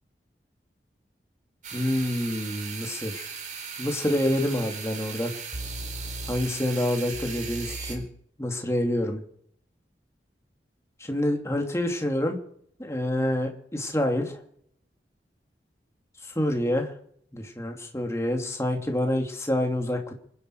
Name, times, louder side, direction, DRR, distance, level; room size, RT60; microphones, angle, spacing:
sound 1, 1.6-8.0, right 4 dB, 45° right, 4.3 m, -37 dB
voice 1, 1.7-3.3 3.8-5.3 6.3-8.0 8.4-9.2 11.0-12.4 12.8-14.4 16.2-16.9 17.3-20.1, left 1 dB, 15° left, 3 dB, 2.7 m, -27 dB
27.0 x 10.5 x 4.9 m, 0.65 s
head